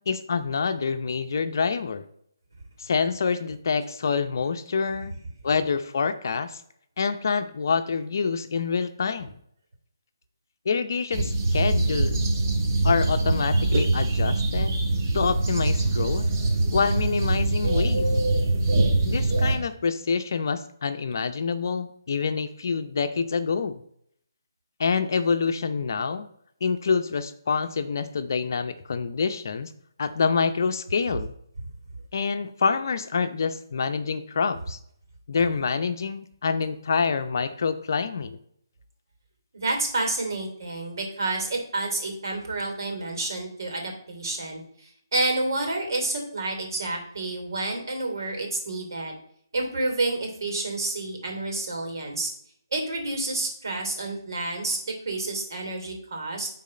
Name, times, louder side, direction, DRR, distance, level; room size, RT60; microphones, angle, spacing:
voice 1, 0.0-2.0 2.8-5.1 5.4-6.6 7.0-9.4 10.7-12.2 12.8-14.8 15.1-16.2 16.7-18.1 19.0-23.8 24.8-26.3 26.6-29.7 30.0-31.3 32.1-34.8 35.3-38.4, left 5 dB, 55° left, 9 dB, 0.7 m, -26 dB
sound 1, 11.1-19.6, right 2 dB, 45° right, 1.7 m, -23 dB
voice 2, 39.5-49.1 49.5-52.3 52.7-56.5, right 2 dB, 60° right, 2 dB, 2.9 m, -29 dB
10.5 x 4.2 x 4.3 m, 0.68 s
hypercardioid pair, 155°, 2 cm